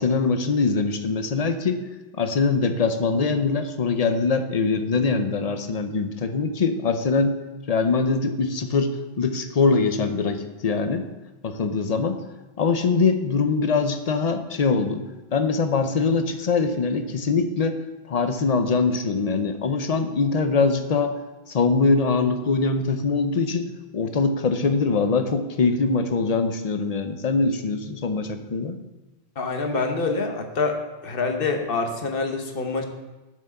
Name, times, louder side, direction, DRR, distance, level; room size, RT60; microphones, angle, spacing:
voice 1, 0.0-1.8 2.2-7.4 7.7-11.1 11.4-12.2 12.6-15.0 15.3-17.8 18.1-21.2 21.5-28.8, left 4 dB, 40° left, 8 dB, 0.7 m, -23 dB
voice 2, 29.4-30.8 31.0-32.8, left 4 dB, 60° left, 4 dB, 1.2 m, -26 dB
7.5 x 6.1 x 6.8 m, 1.1 s
omnidirectional pair, 1.1 m